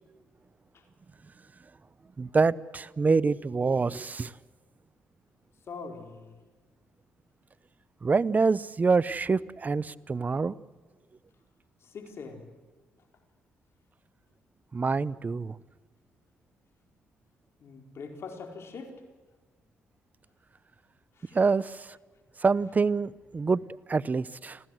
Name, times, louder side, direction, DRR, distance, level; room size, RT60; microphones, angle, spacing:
voice 1, 2.2-4.3 8.0-10.5 14.7-15.5 21.3-21.9 22.4-23.6 23.9-24.6, right 4 dB, 35° right, 0.8 m, -26 dB
voice 2, 5.7-6.4 11.8-12.5 17.6-18.9 21.2-21.4, left 4 dB, 60° left, 4.5 m, -42 dB
26.0 x 15.5 x 7.9 m
supercardioid pair, 65°, 5 cm